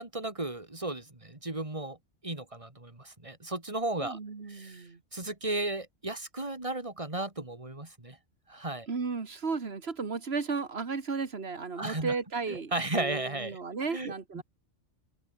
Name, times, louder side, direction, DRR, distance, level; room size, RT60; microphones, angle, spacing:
voice 1, 0.0-2.0 2.2-4.2 4.5-8.2 8.5-8.9 11.8-12.1 12.5-13.6 13.9-14.4, right 2 dB, 25° right, 3.1 m, -35 dB
voice 2, 4.0-5.0 8.9-14.4, right 4 dB, 60° right, 2.2 m, -34 dB
omnidirectional pair, 1.2 m